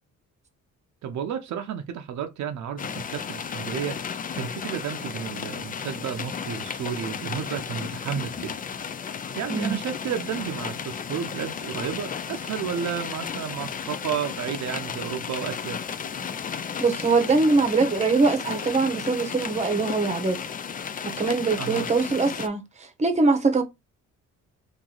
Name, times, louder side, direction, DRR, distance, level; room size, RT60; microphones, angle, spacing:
voice 1, 1.0-4.0 4.3-8.5 9.0-15.8 21.6-21.9, right 8 dB, 70° right, 0.7 m, -32 dB
sound 1, 2.8-22.5, left 7 dB, 30° left, 0.4 m, -34 dB
voice 2, 16.8-20.4 21.2-23.6, right 3 dB, 20° right, 0.9 m, -22 dB
3.0 x 2.6 x 3.8 m
cardioid pair, 90°, 30 cm